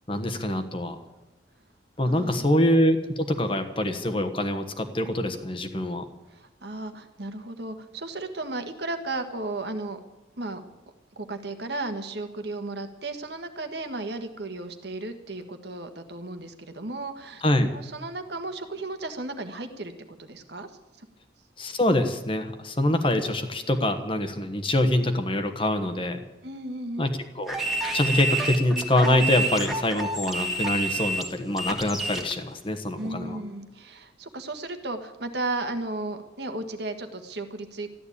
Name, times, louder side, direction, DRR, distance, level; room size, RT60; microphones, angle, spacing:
voice 1, 0.1-1.0 2.0-6.0 17.4-17.7 21.6-26.2 27.0-27.5 27.9-33.4, left 1 dB, 30° left, 7 dB, 1.2 m, -25 dB
voice 2, 2.0-2.5 6.3-10.0 10.4-10.6 11.2-17.4 17.7-21.1 26.4-27.0 33.0-37.9, right 2 dB, 60° right, 7 dB, 1.5 m, -34 dB
sound 1, 27.5-32.3, right 2 dB, ahead, 1.6 m, -29 dB
14.0 x 11.5 x 8.6 m, 1.1 s
head